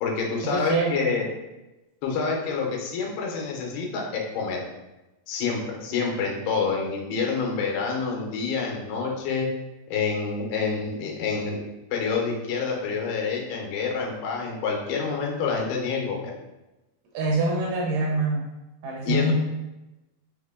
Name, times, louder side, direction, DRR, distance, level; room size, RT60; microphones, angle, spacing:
voice 1, 0.0-1.3 2.0-4.6 5.3-9.5 9.9-11.6 11.9-16.3 19.1-19.3, left 5 dB, 85° left, 0 dB, 2.7 m, -27 dB
voice 2, 0.5-1.1 17.1-18.4 18.8-19.3, right 2 dB, 80° right, -1 dB, 2.0 m, -25 dB
6.0 x 2.1 x 3.5 m, 1.0 s
omnidirectional pair, 4.3 m